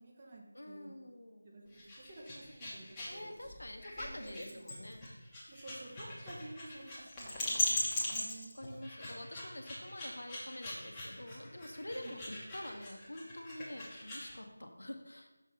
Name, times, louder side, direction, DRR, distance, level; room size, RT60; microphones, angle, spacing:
voice 1, 0.0-1.0 1.4-3.3 3.9-4.6 5.5-8.5 11.9-12.2, right 2 dB, 30° right, 0 dB, 1.1 m, -52 dB
voice 2, 0.5-1.5 3.1-5.1 8.5-15.3, left 1 dB, 70° left, 4 dB, 1.0 m, -46 dB
sound 1, 1.7-14.4, left 1 dB, 10° left, 1.2 m, -40 dB
6.3 x 3.7 x 5.5 m, 1.0 s
figure-of-eight pair, 165°, 0 cm